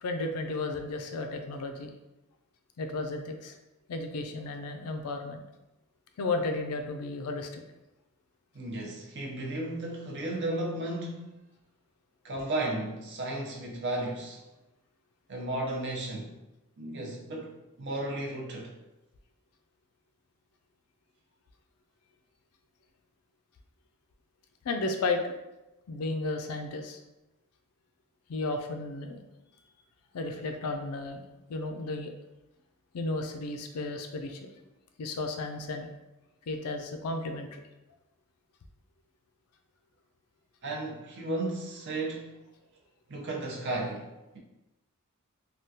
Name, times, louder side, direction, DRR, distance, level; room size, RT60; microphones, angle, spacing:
voice 1, 0.0-1.9 2.8-3.5 3.9-5.4 6.2-7.6 24.6-25.3 25.9-27.0 28.3-29.2 30.1-31.2 31.5-32.1 32.9-34.5 35.0-35.9 36.5-37.6, left 3 dB, 85° left, 5 dB, 0.4 m, -33 dB
voice 2, 8.5-11.3 12.2-14.4 15.3-16.3 16.8-18.7 40.6-42.3 43.1-44.1, right 2 dB, 55° right, -1 dB, 0.6 m, -34 dB
3.5 x 2.3 x 2.7 m, 0.99 s
head